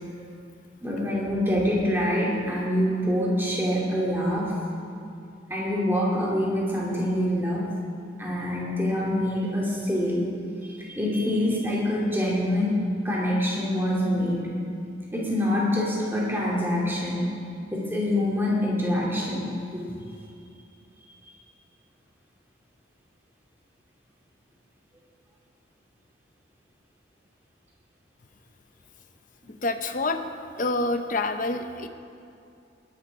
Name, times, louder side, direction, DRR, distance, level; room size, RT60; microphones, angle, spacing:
voice 1, 0.8-4.5 5.5-7.6 8.2-10.2 10.6-14.5 15.1-17.3 17.7-19.9, left 1 dB, 10° right, -5 dB, 2.9 m, -25 dB
voice 2, 29.6-30.2 30.6-31.9, left 2 dB, 45° left, 8 dB, 0.7 m, -27 dB
20.0 x 11.0 x 3.7 m, 2.5 s
head